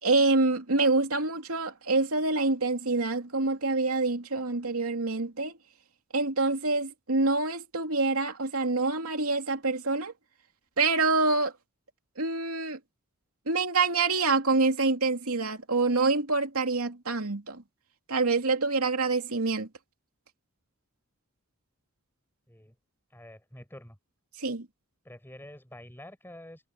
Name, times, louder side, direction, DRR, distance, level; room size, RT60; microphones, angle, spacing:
voice 1, 0.0-5.5 6.1-10.1 10.8-11.5 12.2-12.8 13.5-17.6 18.1-19.7 24.4-24.7, right 3 dB, 85° right, 2.7 m, -26 dB
voice 2, 23.1-24.0 25.0-26.7, left 1 dB, 10° left, 6.4 m, -47 dB
head